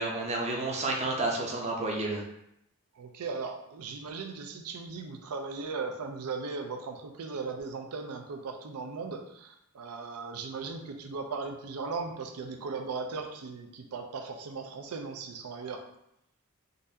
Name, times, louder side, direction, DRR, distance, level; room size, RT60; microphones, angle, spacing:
voice 1, 0.0-2.2, right 2 dB, 30° right, 0 dB, 0.6 m, -30 dB
voice 2, 3.0-15.8, right 4 dB, 85° right, 5 dB, 0.5 m, -37 dB
3.9 x 2.5 x 2.7 m, 0.78 s
head